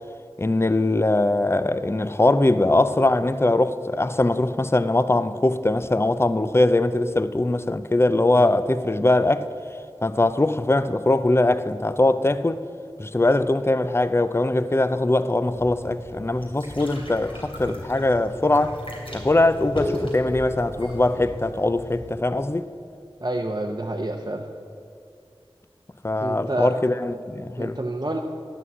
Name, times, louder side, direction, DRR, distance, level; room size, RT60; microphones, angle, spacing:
voice 1, 0.4-9.5 10.0-12.6 13.0-18.9 19.1-22.7 26.0-27.8, left 2 dB, 25° left, 0.4 m, -21 dB
sound 1, 15.4-22.1, left 1 dB, 65° left, 2.9 m, -35 dB
voice 2, 23.2-24.4 26.2-26.7 27.6-28.2, right 1 dB, 45° right, 0.7 m, -28 dB
11.0 x 6.1 x 7.9 m
wide cardioid pair, 40°, 10 cm